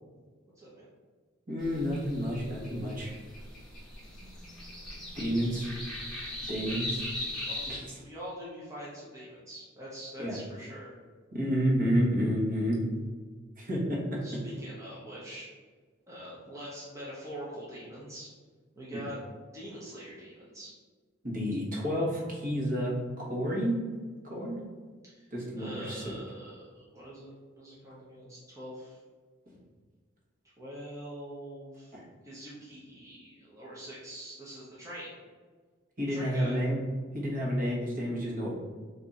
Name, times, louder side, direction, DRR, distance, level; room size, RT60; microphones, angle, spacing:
voice 1, 0.6-0.9 7.4-11.0 14.2-15.5 16.1-18.3 18.8-19.2 19.5-20.7 25.1-25.3 25.6-29.0 30.6-31.9 32.2-35.2 36.1-36.6, equal, 15° right, -8 dB, 0.7 m, -44 dB
voice 2, 1.5-3.1 5.2-5.7 6.5-7.0 7.7-8.0 10.2-10.4 11.3-12.8 13.6-14.2 21.2-23.9 24.2-24.6 25.3-26.0 29.5-29.6 31.9-32.0 36.0-36.8 37.1-38.5, equal, 45° right, -4 dB, 1.2 m, -30 dB
sound 1, 1.6-7.8, left 1 dB, ahead, 1.0 m, -39 dB
3.6 x 2.7 x 4.1 m, 1.5 s
head